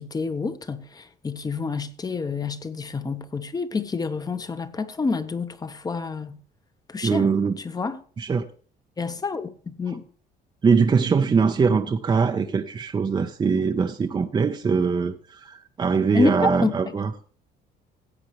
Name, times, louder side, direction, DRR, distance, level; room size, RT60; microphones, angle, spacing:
voice 1, 0.0-6.4 6.9-8.0 9.0-10.0 16.1-16.7, left 4 dB, 20° left, 0.9 m, -28 dB
voice 2, 7.0-7.6 8.2-8.5 10.6-17.1, right 5 dB, 25° right, 0.7 m, -22 dB
17.0 x 8.1 x 3.1 m
cardioid pair, 110°, 17 cm